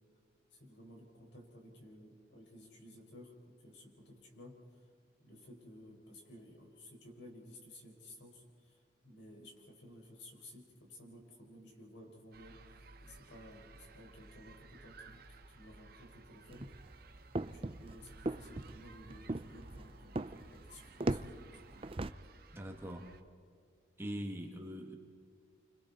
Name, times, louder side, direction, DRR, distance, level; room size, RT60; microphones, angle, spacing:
voice 1, 0.5-4.6 5.2-8.8 9.0-12.6 13.0-15.2 15.5-16.7 17.5-20.2 20.5-21.4, left 1 dB, 60° left, 1 dB, 4.9 m, -55 dB
sound 1, 12.3-23.2, right 3 dB, 50° right, 1.2 m, -57 dB
sound 2, 16.5-22.1, right 2 dB, 25° right, 0.5 m, -39 dB
voice 2, 22.5-23.1 24.0-24.9, equal, 10° right, 2 dB, 1.8 m, -42 dB
30.0 x 25.5 x 4.2 m, 2.1 s
head